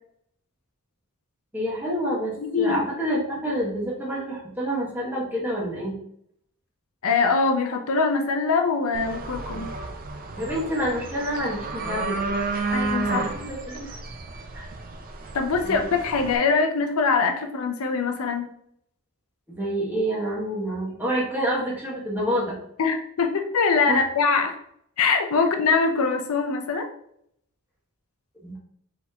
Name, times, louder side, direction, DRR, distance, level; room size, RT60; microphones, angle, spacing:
voice 1, 1.5-6.0 10.4-12.2 13.0-14.0 14.5-14.7 15.6-15.8 19.5-22.5 23.9-24.1 28.4-28.6, equal, 10° right, -5 dB, 1.3 m, -28 dB
voice 2, 2.4-2.8 7.0-9.7 12.7-13.3 15.3-18.5 22.8-24.6 25.0-26.9, left 4 dB, 70° left, 5 dB, 0.6 m, -23 dB
sound 1, 8.9-16.4, right 3 dB, 40° right, 0.5 m, -32 dB
4.3 x 3.7 x 2.8 m, 0.70 s
head